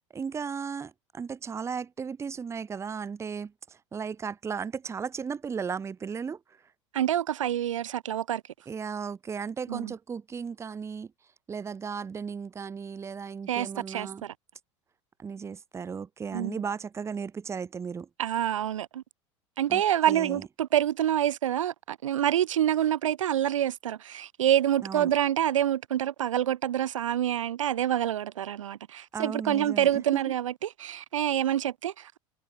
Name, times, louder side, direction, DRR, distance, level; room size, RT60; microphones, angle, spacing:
voice 1, 0.1-6.6 8.7-11.1 11.5-14.2 15.2-18.1 19.7-19.8 20.1-20.4 24.8-25.1 29.1-30.2, right 6 dB, 15° right, 0.5 m, -35 dB
voice 2, 6.9-8.4 9.7-9.9 13.5-14.3 16.3-16.6 18.2-19.0 19.6-32.2, right 11 dB, 85° right, 0.4 m, -27 dB
hypercardioid pair, 80°, 16 cm